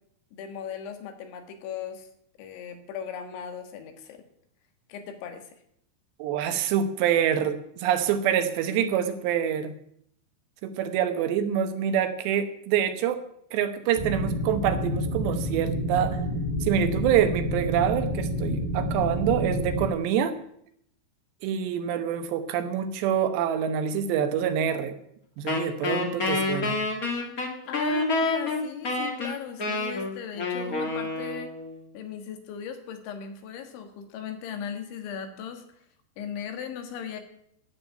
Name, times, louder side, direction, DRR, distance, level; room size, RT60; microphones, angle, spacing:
voice 1, 0.3-2.1 2.4-4.2 4.9-5.6 27.7-31.5 31.9-35.6 36.2-37.2, left 8 dB, 90° left, 6 dB, 4.0 m, -37 dB
voice 2, 6.2-9.7 10.6-13.2 13.5-16.2 16.6-20.3 21.4-24.9 25.4-26.8, right 9 dB, 75° right, 9 dB, 3.2 m, -26 dB
sound 1, 14.0-19.9, equal, 15° right, 1.6 m, -29 dB
Wind instrument woodwind instrument, 25.5-31.8, left 2 dB, 50° left, 1.1 m, -28 dB
12.0 x 7.5 x 8.9 m, 0.71 s
omnidirectional pair, 5.2 m